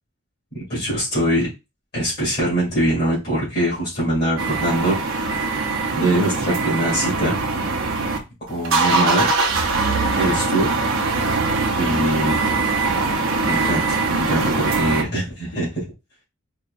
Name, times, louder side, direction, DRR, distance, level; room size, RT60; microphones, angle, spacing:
voice 1, 0.5-1.5 1.9-5.5 5.9-7.4 8.4-9.3 10.1-10.7 11.8-12.4 13.4-15.8, right 1 dB, 45° left, -7 dB, 2.5 m, -23 dB
sound 1, 4.4-8.2 8.5-15.0, right 3 dB, 65° right, 0.8 m, -22 dB
4.7 x 2.8 x 2.6 m, 0.26 s
head